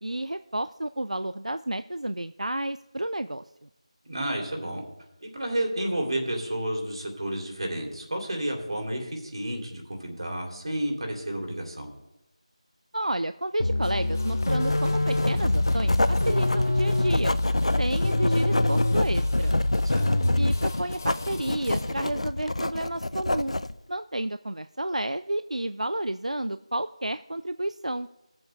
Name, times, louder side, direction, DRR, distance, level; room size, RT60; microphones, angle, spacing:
voice 1, 0.0-3.4 12.9-17.3 17.8-19.6 20.4-23.5 23.9-28.1, right 1 dB, 85° right, 12 dB, 0.4 m, -31 dB
voice 2, 4.0-4.8 5.2-11.9 19.8-20.1, right 1 dB, 50° right, 2 dB, 2.9 m, -31 dB
sound 1, 13.6-20.8, left 2 dB, 50° left, 0.9 m, -25 dB
sound 2, 13.8-21.9, left 3 dB, 25° left, 0.7 m, -45 dB
Writing, 14.4-23.8, left 2 dB, 70° left, 0.5 m, -28 dB
16.0 x 7.7 x 3.3 m, 0.92 s
figure-of-eight pair, 170°, 4 cm